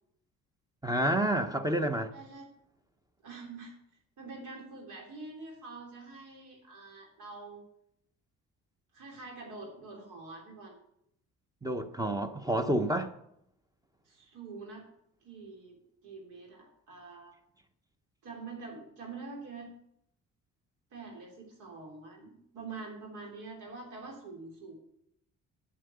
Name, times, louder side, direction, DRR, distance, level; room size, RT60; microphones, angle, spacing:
voice 1, 0.8-2.1 11.6-13.1, right 1 dB, 10° right, 1.0 m, -29 dB
voice 2, 2.1-2.5 3.2-3.8 4.2-7.6 8.9-10.8 14.1-14.8 15.2-17.4 18.2-19.7 20.9-24.7, right 3 dB, 90° right, 3.5 m, -45 dB
7.7 x 7.7 x 8.1 m
cardioid pair, 90°, 30 cm